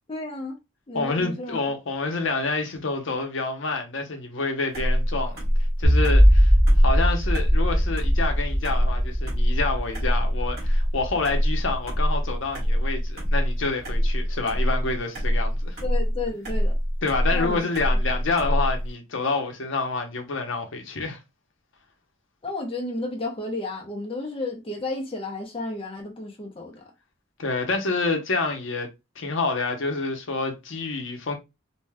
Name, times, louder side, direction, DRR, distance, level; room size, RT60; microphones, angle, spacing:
voice 1, 0.1-0.6 0.9-1.6 15.8-16.7 17.3-17.6 22.4-26.8, left 2 dB, 25° left, 0.6 m, -32 dB
voice 2, 0.9-5.4 5.8-6.5 6.8-15.8 17.0-21.2 27.4-28.9 29.2-31.3, left 3 dB, 65° left, 0.7 m, -28 dB
sound 1, 4.7-18.9, equal, 50° right, 1.2 m, -25 dB
sound 2, 5.8-13.0, equal, 20° right, 0.7 m, -21 dB
2.6 x 2.2 x 3.3 m
head